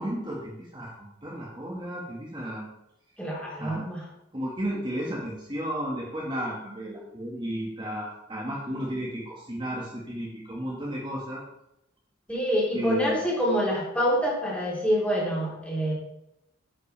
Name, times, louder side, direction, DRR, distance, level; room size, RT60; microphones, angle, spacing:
voice 1, 0.0-2.7 3.6-3.8 4.3-11.4 12.7-13.3, equal, 25° right, -4 dB, 1.8 m, -33 dB
voice 2, 3.2-4.0 12.3-15.9, equal, 5° left, -5 dB, 3.4 m, -26 dB
10.0 x 8.3 x 3.4 m, 0.83 s
head